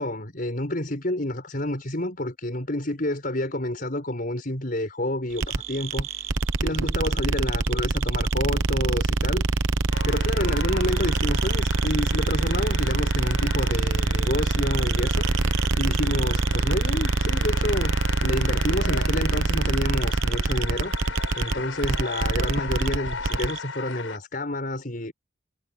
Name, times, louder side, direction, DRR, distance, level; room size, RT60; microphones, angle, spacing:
voice 1, 0.0-9.7 10.0-21.1 21.4-25.1, left 1 dB, 45° left, 5.5 m, -29 dB
sound 1, 5.4-23.6, right 3 dB, 80° right, 0.9 m, -24 dB
sound 2, 9.9-24.2, left 5 dB, 90° left, 6.5 m, -37 dB
head